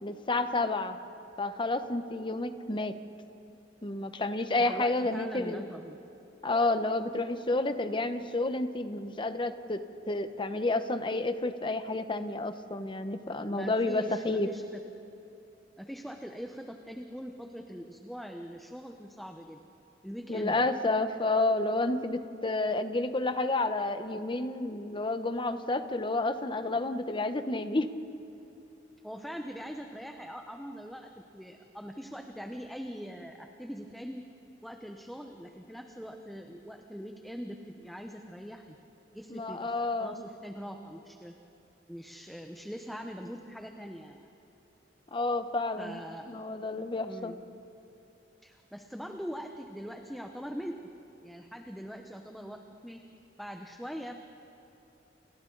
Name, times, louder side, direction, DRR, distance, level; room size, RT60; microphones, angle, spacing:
voice 1, 0.0-1.0 1.4-2.9 3.8-5.6 6.4-14.5 20.3-27.9 39.3-40.3 45.1-46.0 46.3-47.4, left 2 dB, 25° left, 9 dB, 1.0 m, -30 dB
voice 2, 4.6-6.0 13.5-14.8 15.8-19.6 20.0-20.7 29.0-34.3 34.6-38.8 39.1-41.3 41.9-44.3 45.8-46.3 47.0-47.4 48.4-50.8 51.2-53.0 53.4-54.2, equal, ahead, 3 dB, 0.9 m, -42 dB
29.5 x 29.0 x 4.0 m, 2.8 s
head